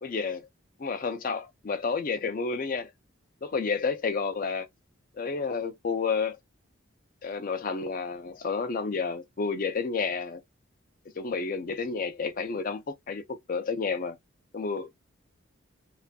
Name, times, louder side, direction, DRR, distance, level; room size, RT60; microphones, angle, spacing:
voice 1, 0.0-0.5 0.8-2.9 3.4-4.7 5.2-6.4 7.2-10.4 11.1-14.2 14.5-14.9, left 5 dB, 40° left, 0.4 m, -30 dB
2.5 x 2.3 x 2.3 m
head